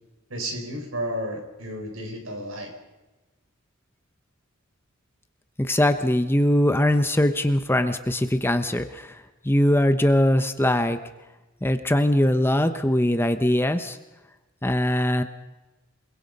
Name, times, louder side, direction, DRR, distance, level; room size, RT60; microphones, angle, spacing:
voice 1, 0.3-2.7, equal, 70° right, 3 dB, 5.4 m, -32 dB
voice 2, 5.6-11.0 11.6-14.0 14.6-15.2, left 1 dB, 10° left, 8 dB, 1.0 m, -21 dB
28.5 x 21.5 x 5.5 m, 1.1 s
head